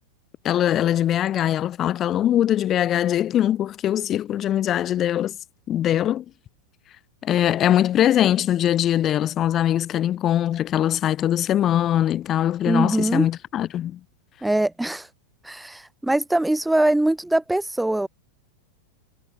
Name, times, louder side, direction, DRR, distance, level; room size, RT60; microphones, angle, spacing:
voice 1, 0.4-5.4 5.7-6.2 7.2-14.0, left 11 dB, 30° left, 1.2 m, -22 dB
voice 2, 12.7-13.3 14.4-15.1 15.4-18.1, right 1 dB, 5° right, 0.8 m, -22 dB
figure-of-eight pair, 90°, 0 cm